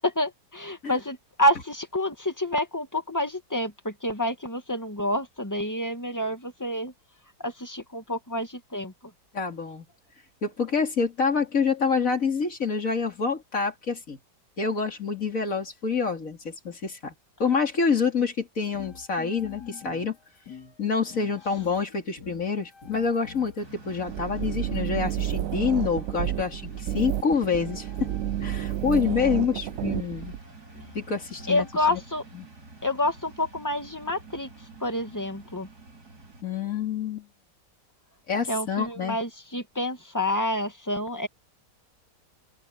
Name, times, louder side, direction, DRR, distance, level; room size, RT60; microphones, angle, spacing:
voice 1, 0.2-6.9 7.4-8.9 31.5-32.2 32.8-34.5 34.8-35.7 38.5-41.3, left 1 dB, 10° left, 2.1 m, -28 dB
voice 2, 9.3-9.9 10.4-14.2 14.6-17.1 17.4-20.1 20.8-28.1 28.4-30.3 30.9-31.6 31.9-32.0 32.3-32.5 36.4-37.3 38.3-39.2, left 5 dB, 45° left, 3.4 m, -27 dB
sound 1, 18.6-32.0, left 4 dB, 65° left, 3.9 m, -47 dB
sound 2, 23.6-36.4, right 3 dB, 60° right, 5.0 m, -48 dB
sound 3, 24.1-30.4, right 13 dB, 80° right, 0.7 m, -30 dB
open air
omnidirectional pair, 1.9 m